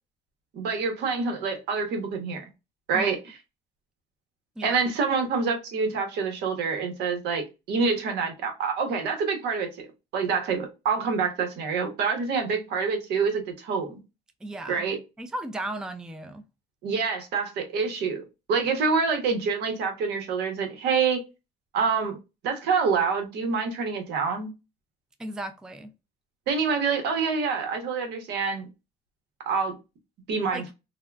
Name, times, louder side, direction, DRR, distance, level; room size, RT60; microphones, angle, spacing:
voice 1, 0.5-2.4 2.9-3.4 4.6-9.7 10.1-14.0 14.7-15.0 16.8-18.2 18.5-21.2 21.7-22.2 22.4-24.5 26.5-28.7 29.5-29.7 30.3-30.6, right 5 dB, 80° right, 0.9 m, -26 dB
voice 2, 14.4-14.9 15.2-16.5 25.2-25.9 30.5-30.6, right 1 dB, 5° right, 0.3 m, -35 dB
3.5 x 2.1 x 2.3 m
cardioid pair, 110°, 17 cm